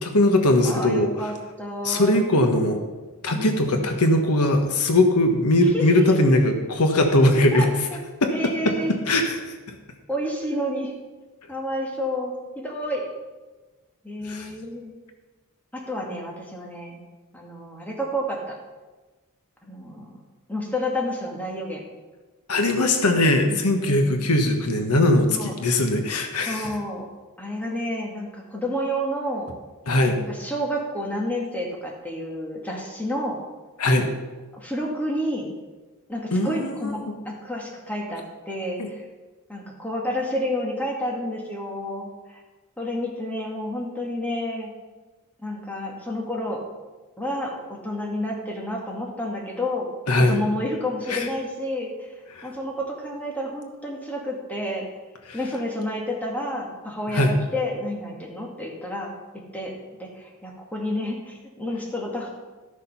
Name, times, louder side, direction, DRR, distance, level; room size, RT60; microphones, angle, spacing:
voice 1, 0.0-1.3 1.8-2.8 3.2-7.7 8.2-8.8 9.1-9.6 14.2-14.5 22.5-26.7 29.9-30.2 33.8-34.1 36.3-37.1 38.8-38.9 50.1-50.4 51.1-51.3 52.3-52.5 55.3-55.4 57.1-57.5, left 1 dB, 90° left, 5 dB, 1.3 m, -20 dB
voice 2, 0.6-2.2 3.3-3.8 5.7-6.2 7.5-8.0 8.3-8.9 10.1-10.9 11.5-13.0 14.0-14.9 15.7-17.0 17.3-18.6 19.6-20.2 20.5-21.9 23.5-24.3 25.2-25.5 26.5-27.1 27.4-29.5 30.1-33.4 34.5-35.5 36.1-39.0 39.5-42.1 42.8-44.7 45.4-46.6 47.2-49.9 50.2-51.9 52.4-54.9 55.3-59.1 59.5-62.3, left 1 dB, 5° left, -2 dB, 2.1 m, -30 dB
13.0 x 6.6 x 5.6 m, 1.2 s
head